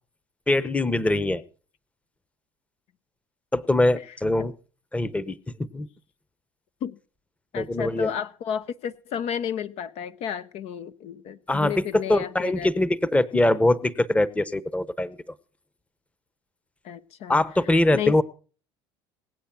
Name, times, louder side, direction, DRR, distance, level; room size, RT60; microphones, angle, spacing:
voice 1, 0.5-1.4 3.5-4.5 4.9-5.9 7.5-8.1 11.5-15.2 17.3-18.2, left 1 dB, 10° left, 1.0 m, -23 dB
voice 2, 3.9-4.5 6.8-7.0 7.5-12.7 16.8-18.2, left 8 dB, 55° left, 0.8 m, -33 dB
18.5 x 8.4 x 6.0 m
hypercardioid pair, 75°, 12 cm